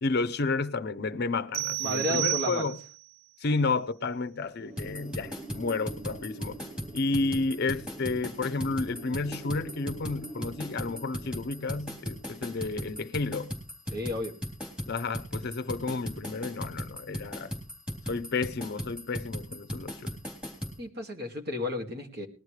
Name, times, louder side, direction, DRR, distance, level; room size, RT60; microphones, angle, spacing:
voice 1, 0.0-2.8 3.4-6.6 6.9-13.5 14.9-17.5 18.1-20.2, left 3 dB, 50° left, 0.6 m, -31 dB
sound 1, 1.5-3.1, right 24 dB, 85° right, 0.6 m, -31 dB
voice 2, 1.8-2.7 13.9-14.3 20.8-22.3, left 2 dB, 50° right, 2.1 m, -32 dB
Wind, 4.6-13.3, right 2 dB, 30° right, 2.4 m, -46 dB
sound 2, 4.8-20.8, equal, 5° right, 3.6 m, -37 dB
20.0 x 12.0 x 3.2 m
head